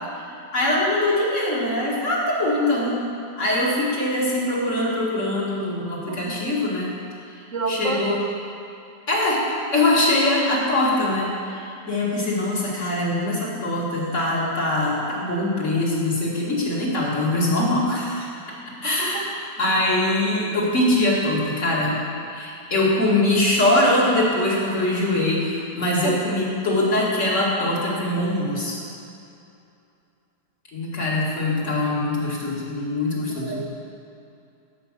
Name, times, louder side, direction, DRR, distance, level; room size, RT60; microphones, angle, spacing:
voice 1, 0.2-3.1 3.4-6.9 7.3-8.2 9.1-9.4 9.7-18.3 18.8-19.3 19.6-22.0 22.3-28.8 30.7-33.6, left 1 dB, 45° left, -5 dB, 2.4 m, -23 dB
voice 2, 6.1-6.4 7.5-8.2 18.8-19.3 26.0-26.2 33.4-33.8, right 4 dB, 50° right, 2 dB, 1.2 m, -29 dB
12.0 x 5.4 x 7.4 m, 2.6 s
omnidirectional pair, 1.8 m